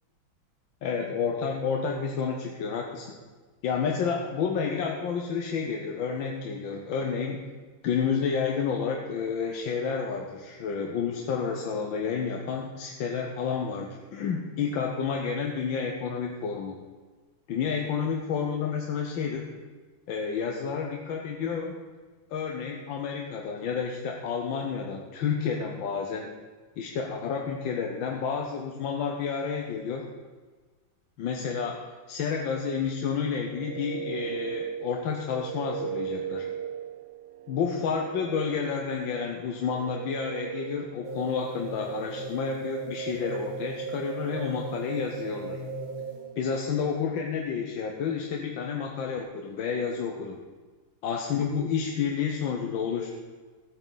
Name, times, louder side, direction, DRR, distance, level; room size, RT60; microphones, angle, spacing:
voice 1, 0.8-3.2 3.6-7.5 7.8-16.8 17.5-19.5 20.1-21.8 22.3-26.3 26.8-30.1 31.2-31.8 32.1-36.5 37.5-45.6 46.4-50.4 51.0-53.1, left 6 dB, 75° left, 1 dB, 1.6 m, -30 dB
sound 1, 33.3-41.1, right 8 dB, 75° right, 1.0 m, -37 dB
sound 2, 41.0-46.5, right 4 dB, 50° right, 2.1 m, -36 dB
16.5 x 8.8 x 4.0 m, 1.4 s
omnidirectional pair, 2.1 m